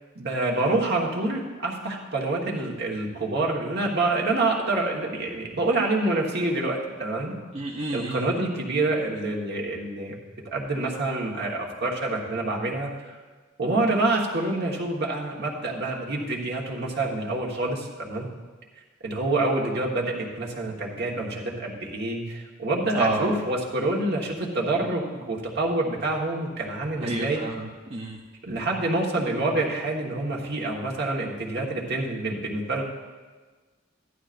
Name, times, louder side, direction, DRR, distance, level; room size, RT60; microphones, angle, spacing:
voice 1, 0.1-7.3 7.9-10.1 10.4-12.9 13.6-18.3 19.0-27.4 28.4-32.8, right 2 dB, 55° right, -2 dB, 1.4 m, -27 dB
voice 2, 7.5-8.3 23.0-23.4 27.0-28.2, right 2 dB, 30° right, -2 dB, 0.6 m, -29 dB
14.5 x 11.0 x 2.5 m, 1.4 s
head